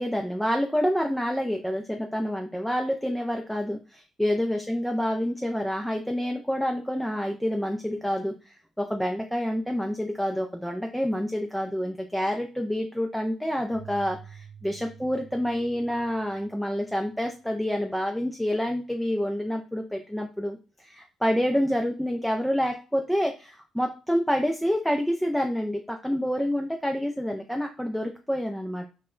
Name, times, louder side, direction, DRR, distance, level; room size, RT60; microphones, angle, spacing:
voice 1, 0.0-28.9, equal, ahead, 3 dB, 0.3 m, -28 dB
Keyboard (musical), 13.7-17.2, right 7 dB, 40° left, 0.7 m, -49 dB
2.1 x 2.0 x 3.6 m, 0.34 s
cardioid pair, 90°, 0 cm